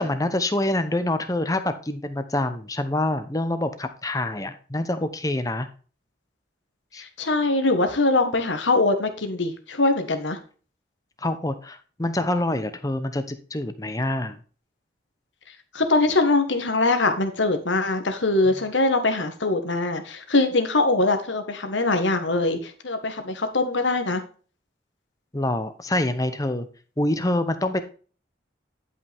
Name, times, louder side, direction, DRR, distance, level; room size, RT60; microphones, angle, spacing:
voice 1, 0.0-5.7 6.9-7.0 11.2-14.4 18.5-18.6 25.3-26.7 27.0-27.8, left 1 dB, 20° left, 10 dB, 0.8 m, -26 dB
voice 2, 7.0-10.4 15.7-24.2, left 2 dB, 85° left, 7 dB, 1.5 m, -22 dB
11.0 x 5.5 x 3.6 m, 0.40 s
head